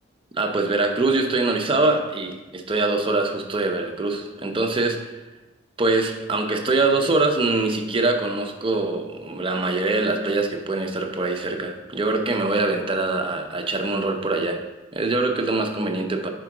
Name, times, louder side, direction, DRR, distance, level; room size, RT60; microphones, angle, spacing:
voice 1, 0.4-5.1 5.8-14.6 14.9-16.3, right 3 dB, 25° right, 4 dB, 0.6 m, -23 dB
4.8 x 4.5 x 5.9 m, 1.1 s
head